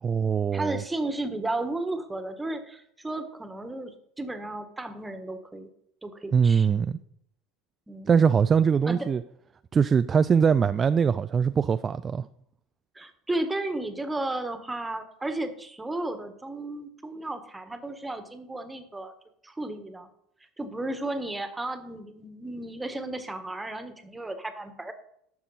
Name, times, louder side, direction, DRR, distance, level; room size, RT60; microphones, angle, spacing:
voice 1, 0.0-0.8 6.3-7.0 8.1-9.2 9.7-12.3, right 6 dB, 30° right, 13 dB, 0.4 m, -22 dB
voice 2, 0.5-5.7 6.0-6.7 7.9-8.1 8.9-9.1 12.9-19.1 19.4-20.1 20.6-24.9, right 2 dB, 10° right, 8 dB, 1.5 m, -34 dB
12.5 x 7.1 x 4.1 m, 0.72 s
hypercardioid pair, 75°, 0 cm